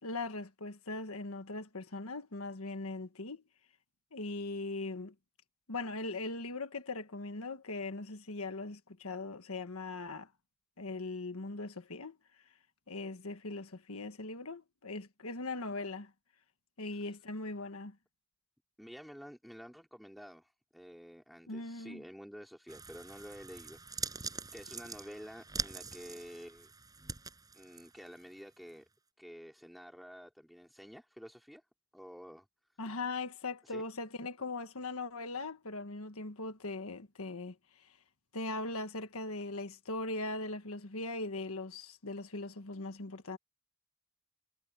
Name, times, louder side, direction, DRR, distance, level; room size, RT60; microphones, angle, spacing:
voice 1, 0.0-3.4 4.1-5.1 5.7-10.3 10.8-12.2 12.9-16.1 16.8-17.9 21.5-22.0 32.8-38.0 38.3-43.4, left 2 dB, 85° left, 1.5 m, -40 dB
voice 2, 18.8-24.2 24.5-26.7 27.5-28.9 29.2-31.6 31.9-32.5 33.7-33.8, equal, ahead, 3.9 m, -50 dB
sound 1, 22.7-28.3 28.7-28.8, right 4 dB, 15° right, 7.4 m, -43 dB
head